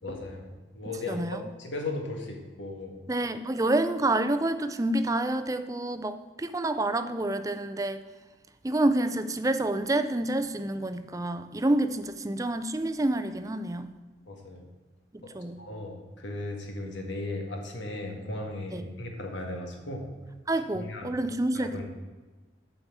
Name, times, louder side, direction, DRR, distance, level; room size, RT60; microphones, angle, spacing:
voice 1, 0.0-3.0 14.3-14.6 15.2-15.3 15.6-20.1 20.7-21.1 21.6-21.8, left 2 dB, 80° left, 2 dB, 1.8 m, -36 dB
voice 2, 1.1-1.4 3.1-8.0 8.6-13.9 15.1-15.6 18.7-18.8 20.5-21.8, right 1 dB, 20° right, 10 dB, 0.5 m, -28 dB
8.8 x 5.8 x 7.3 m, 1.3 s
head